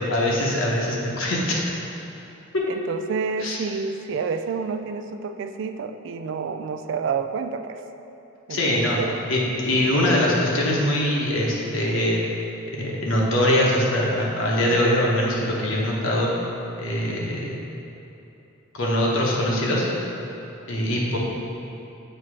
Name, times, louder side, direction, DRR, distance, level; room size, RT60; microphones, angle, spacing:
voice 1, 0.1-1.7 3.4-3.6 8.5-9.0 9.3-12.2 12.7-16.3 16.8-17.6 18.7-19.9 20.7-21.2, left 1 dB, 70° left, -4 dB, 1.1 m, -22 dB
voice 2, 2.7-7.8 8.5-9.3, right 5 dB, 65° right, 8 dB, 0.3 m, -29 dB
7.7 x 2.9 x 4.9 m, 3.0 s
head